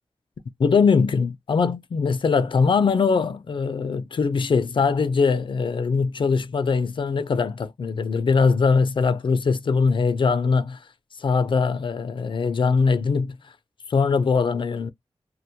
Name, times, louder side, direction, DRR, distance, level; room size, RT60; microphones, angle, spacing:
voice 1, 0.6-10.8 11.2-13.4 13.9-14.9, left 5 dB, 60° left, 0.4 m, -21 dB
2.1 x 2.1 x 2.7 m
cardioid pair, 70°, 10 cm